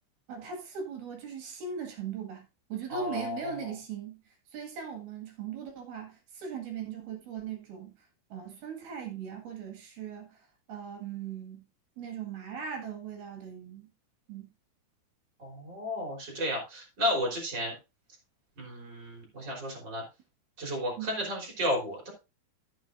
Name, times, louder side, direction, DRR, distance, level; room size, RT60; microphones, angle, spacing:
voice 1, 0.3-4.2 4.5-7.9 8.3-11.6 12.0-13.9 14.3-14.5 21.0-21.1, right 6 dB, 60° right, 3.2 m, -39 dB
voice 2, 2.9-3.5 15.4-17.7 18.6-20.0 20.6-22.1, left 1 dB, 25° right, 3.1 m, -33 dB
14.0 x 7.6 x 2.5 m
omnidirectional pair, 5.9 m